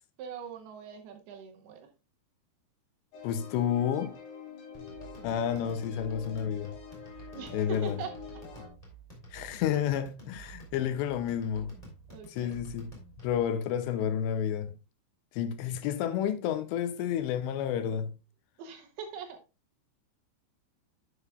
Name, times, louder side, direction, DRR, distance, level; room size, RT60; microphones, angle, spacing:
voice 1, 0.2-1.9 7.3-8.1 12.1-12.6 18.6-19.4, right 7 dB, 70° right, 2.7 m, -42 dB
sound 1, 3.1-8.7, left 7 dB, 65° left, 5.0 m, -46 dB
voice 2, 3.2-4.1 5.2-6.7 7.5-8.0 9.3-11.7 12.3-12.9 13.2-14.7 15.3-18.1, left 9 dB, 80° left, 2.7 m, -30 dB
sound 2, 4.7-13.5, right 3 dB, 10° left, 2.6 m, -50 dB
10.5 x 8.1 x 2.4 m
omnidirectional pair, 5.2 m